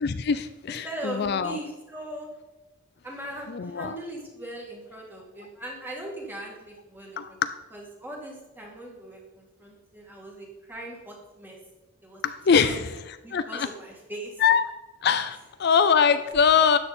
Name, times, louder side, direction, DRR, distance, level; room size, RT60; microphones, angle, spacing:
voice 1, 0.0-1.6 3.5-4.0 7.2-7.3 12.2-12.9 13.3-13.7 14.4-14.6 15.0-16.8, left 6 dB, 55° left, 11 dB, 0.4 m, -22 dB
voice 2, 0.8-2.3 3.0-7.4 7.7-11.6 12.0-12.2 12.5-12.8 13.2-14.4, right 1 dB, 10° right, -1 dB, 2.3 m, -39 dB
12.5 x 8.9 x 4.3 m, 1.1 s
head